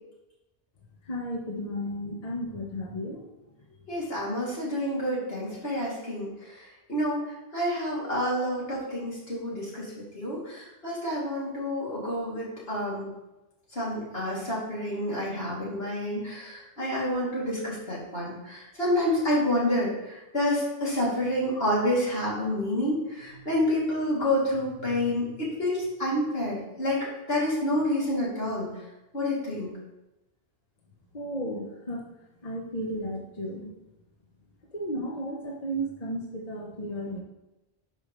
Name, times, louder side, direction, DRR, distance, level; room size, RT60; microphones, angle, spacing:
voice 1, 1.1-3.2 31.1-32.1 32.4-33.7 34.7-37.2, equal, 40° left, -1 dB, 1.0 m, -34 dB
voice 2, 3.9-7.2 7.5-13.1 13.7-28.7 29.1-29.7, left 1 dB, 75° left, -6 dB, 3.0 m, -28 dB
11.0 x 5.3 x 3.1 m, 0.99 s
omnidirectional pair, 1.0 m